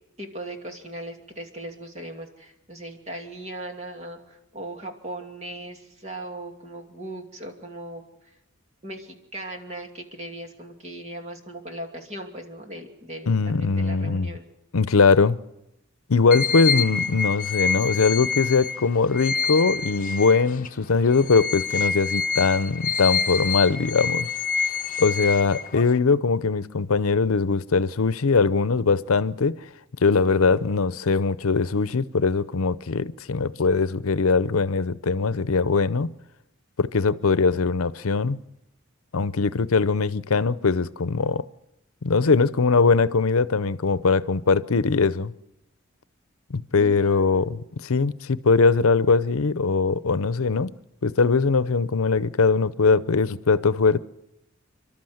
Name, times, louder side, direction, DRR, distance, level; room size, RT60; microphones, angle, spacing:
voice 1, 0.2-8.0 8.8-14.5 46.8-47.5, right 1 dB, 30° right, 2.6 m, -38 dB
voice 2, 13.3-14.3 14.7-15.4 16.1-24.3 25.0-29.6 30.0-36.1 36.8-38.4 39.1-41.4 42.0-45.3 46.5-50.7 51.0-54.0, left 4 dB, 90° left, 0.7 m, -21 dB
sound 1, 16.3-20.7 21.1-26.0, left 5 dB, 40° left, 1.0 m, -27 dB
29.5 x 12.5 x 7.9 m
head